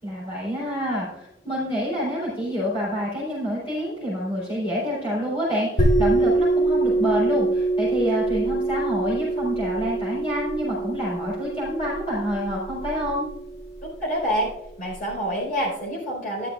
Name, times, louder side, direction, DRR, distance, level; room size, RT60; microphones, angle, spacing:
voice 1, 0.0-13.3, equal, 30° left, -8 dB, 4.0 m, -27 dB
sound 1, 5.8-15.1, right 2 dB, 80° left, 3.3 m, -25 dB
voice 2, 14.0-14.5 14.8-16.5, equal, 50° left, -3 dB, 4.5 m, -26 dB
12.5 x 12.0 x 2.5 m, 0.88 s
head